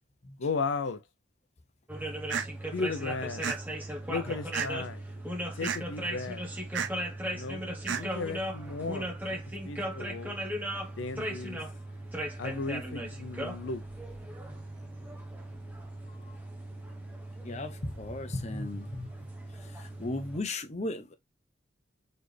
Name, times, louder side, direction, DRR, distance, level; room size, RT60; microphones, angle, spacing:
voice 1, 0.4-1.0 2.7-3.5 4.1-5.0 5.5-6.4 7.3-7.6 7.9-9.4 9.6-10.4 11.0-11.6 12.4-13.8, left 4 dB, 75° left, 0.5 m, -35 dB
sound 1, 1.9-20.4, right 1 dB, 10° right, 0.9 m, -38 dB
sound 2, 2.3-2.5 3.4-3.6 4.5-4.9 5.6-5.8 6.7-6.9 7.9-8.0, right 7 dB, 70° right, 0.6 m, -31 dB
voice 2, 17.4-19.1 20.0-21.1, left 2 dB, 35° left, 0.7 m, -35 dB
4.1 x 3.3 x 3.2 m
head